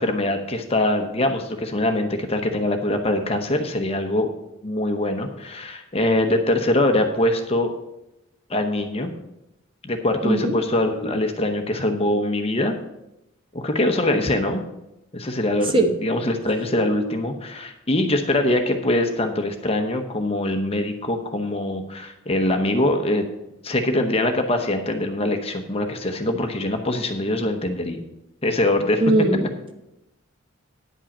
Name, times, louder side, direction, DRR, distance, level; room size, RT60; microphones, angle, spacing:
voice 1, 0.0-4.3 4.6-7.7 8.5-9.1 9.8-12.7 13.5-14.6 15.1-23.2 23.6-28.0 28.4-29.0, left 1 dB, 30° left, 5 dB, 0.9 m, -23 dB
voice 2, 10.2-10.5 15.7-15.9 29.0-29.4, right 2 dB, 25° right, 5 dB, 1.0 m, -19 dB
9.9 x 5.4 x 7.2 m, 0.88 s
head